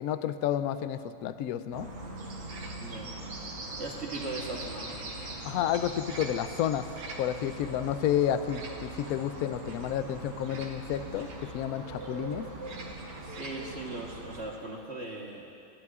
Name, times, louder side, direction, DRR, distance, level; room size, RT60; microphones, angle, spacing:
voice 1, 0.0-1.9 5.4-6.8 7.2-12.5, left 10 dB, 80° left, 11 dB, 0.8 m, -30 dB
sound 1, 1.7-14.5, right 2 dB, 90° right, 2.5 m, -43 dB
sound 2, 2.2-13.8, right 2 dB, 65° right, 1.8 m, -44 dB
voice 2, 3.8-5.0 13.2-15.6, right 2 dB, 40° right, -3 dB, 1.3 m, -39 dB
29.5 x 11.0 x 2.4 m, 2.6 s
omnidirectional pair, 2.1 m